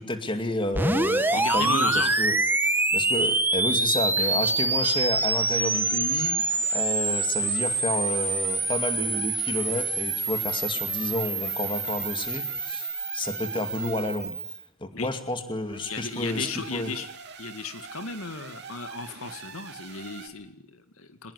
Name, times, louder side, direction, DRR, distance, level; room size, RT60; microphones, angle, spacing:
voice 1, 0.0-2.4 2.9-6.4 6.7-16.9, left 1 dB, 25° left, 8 dB, 2.4 m, -31 dB
sound 1, 0.7-14.6, right 3 dB, 10° right, 1.4 m, -26 dB
voice 2, 1.3-2.1 4.2-4.3 14.9-15.1 15.8-17.1 17.4-21.3, left 4 dB, 85° left, 10 dB, 2.2 m, -35 dB
sound 2, 4.5-14.2 15.6-20.3, right 6 dB, 55° right, 3.2 m, -44 dB
24.0 x 20.5 x 9.9 m, 0.70 s
head